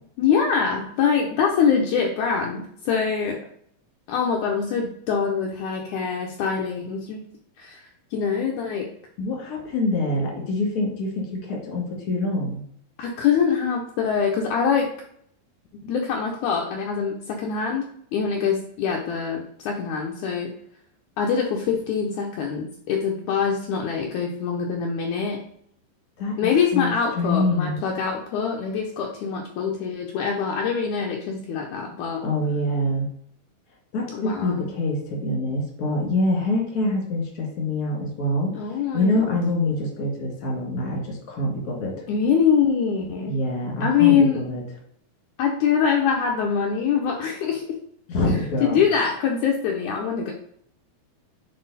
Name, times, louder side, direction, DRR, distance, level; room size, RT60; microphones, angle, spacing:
voice 1, 0.2-3.4 4.1-7.3 7.6-7.8 8.1-8.9 13.0-14.9 15.8-20.5 21.2-25.4 26.4-32.2 34.1-34.7 38.5-39.3 42.1-43.4 43.8-44.4 45.4-47.6 48.6-50.3, left 6 dB, 85° left, 0 dB, 1.7 m, -24 dB
voice 2, 9.2-12.6 26.2-26.4 26.7-27.8 32.2-33.1 33.9-38.5 38.9-41.9 43.3-44.6 48.1-48.8, left 2 dB, 35° left, -1 dB, 1.6 m, -25 dB
7.5 x 3.9 x 4.0 m, 0.67 s
omnidirectional pair, 4.4 m